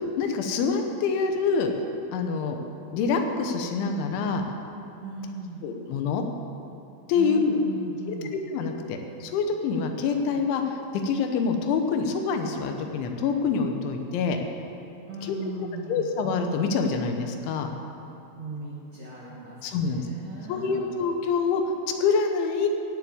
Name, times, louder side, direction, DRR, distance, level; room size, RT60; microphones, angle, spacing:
voice 1, 0.2-1.7 2.1-2.6 2.9-4.4 5.6-6.2 7.1-7.6 8.1-10.8 11.0-14.4 15.2-15.4 15.9-17.7 19.6-20.1 20.5-21.6 22.0-22.7, left 5 dB, 80° left, 4 dB, 3.4 m, -26 dB
voice 2, 5.0-5.7 7.1-8.3 15.0-16.1 18.3-20.9, right 2 dB, 60° right, -6 dB, 1.9 m, -38 dB
17.0 x 7.3 x 7.9 m, 2.9 s
omnidirectional pair, 5.4 m